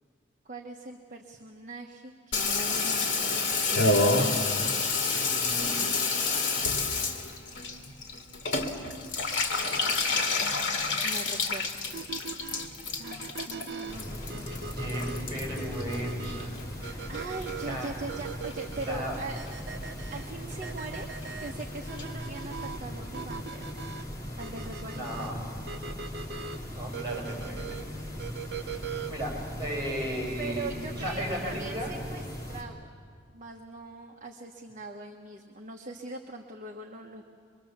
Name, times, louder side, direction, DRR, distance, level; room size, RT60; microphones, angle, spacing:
voice 1, 0.4-4.3 11.0-11.9 13.0-14.7 17.1-19.4 20.1-21.1 21.4-23.6 24.4-25.3 30.4-32.2 32.5-32.9 33.3-37.2, right 2 dB, 40° right, 1 dB, 1.2 m, -41 dB
Water tap faucet / Bathtub (filling or washing), 2.3-16.9 17.1-17.9 18.2-18.3 18.5-18.6 18.8-19.2 19.5-19.6 19.8-19.9 20.2-20.3 20.5-20.6 20.8-20.9 21.2-21.3 21.6-21.7 22.0-22.1, left 3 dB, 75° left, 2.3 m, -29 dB
voice 2, 5.2-5.8 14.8-17.1 17.7-17.9 18.9-19.2 24.9-25.4 26.3-26.4 26.7-27.8 28.6-31.9, equal, 25° right, -2 dB, 7.2 m, -36 dB
sound 1, 11.9-29.3, right 6 dB, 60° right, 0.7 m, -41 dB
sound 2, 13.9-32.6, equal, 20° left, 3.0 m, -39 dB
24.5 x 23.0 x 7.3 m, 2.1 s
head